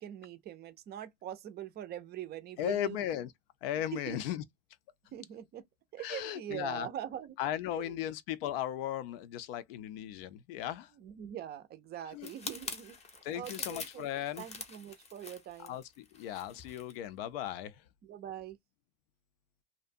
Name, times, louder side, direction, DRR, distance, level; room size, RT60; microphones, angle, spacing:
voice 1, 0.0-3.0 3.9-4.2 5.1-5.6 5.9-7.4 7.7-8.0 11.0-13.0 13.3-14.1 14.4-15.8 18.0-18.6, right 11 dB, 30° right, 0.5 m, -43 dB
voice 2, 2.6-3.3 3.6-4.4 6.0-6.9 7.4-10.9 12.1-12.3 13.2-14.5 15.6-17.9, left 11 dB, 65° left, 0.5 m, -36 dB
sound 1, 12.2-17.0 17.3-17.5, left 4 dB, 20° left, 0.7 m, -45 dB
2.5 x 2.2 x 2.5 m
hypercardioid pair, 105°, 31 cm